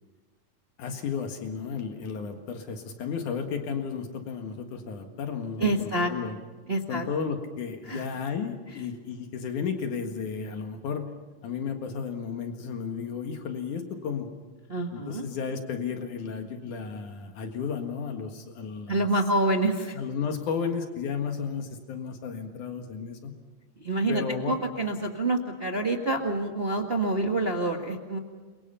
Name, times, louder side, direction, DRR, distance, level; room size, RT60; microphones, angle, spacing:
voice 1, 0.8-6.4 6.9-11.1 11.4-14.3 14.9-19.1 19.9-23.3 24.1-24.6, left 6 dB, 80° left, 5 dB, 3.2 m, -33 dB
voice 2, 5.6-6.1 6.7-7.0 7.9-8.0 14.7-15.2 18.9-20.0 23.8-28.2, right 2 dB, 25° right, 2 dB, 1.3 m, -27 dB
28.5 x 23.5 x 5.7 m, 1.3 s
omnidirectional pair, 3.5 m